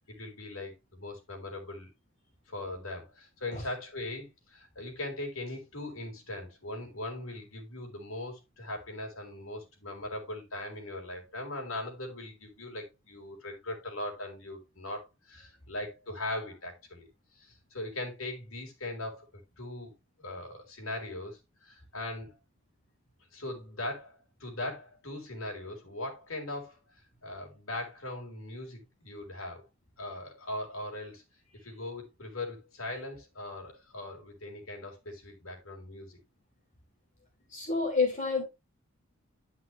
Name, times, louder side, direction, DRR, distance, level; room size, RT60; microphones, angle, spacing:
voice 1, 0.1-1.9 2.5-17.1 17.4-19.3 19.6-19.9 20.2-22.4 23.3-26.8 27.2-29.7 30.0-31.2 31.6-36.2, left 1 dB, 75° left, 3.7 m, -40 dB
voice 2, 37.5-38.4, left 4 dB, 35° left, 2.9 m, -28 dB
11.0 x 5.7 x 3.1 m
head